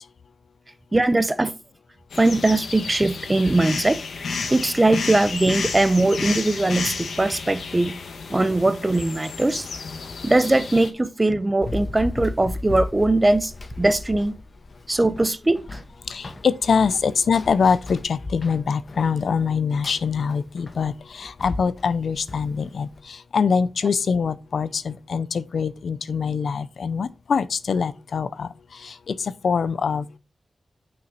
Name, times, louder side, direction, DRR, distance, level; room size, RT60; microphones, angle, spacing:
voice 1, 0.9-1.5 2.2-4.0 4.5-7.9 8.3-9.7 10.2-13.5 13.8-14.4 14.9-15.8, right 2 dB, 20° right, 0.7 m, -20 dB
sound 1, 2.1-10.9, left 4 dB, 90° left, 1.6 m, -32 dB
Run, 11.6-23.0, left 2 dB, 40° left, 1.4 m, -36 dB
voice 2, 16.1-30.2, left 6 dB, 70° left, 0.6 m, -24 dB
8.4 x 6.4 x 4.2 m
wide cardioid pair, 105°, 0 cm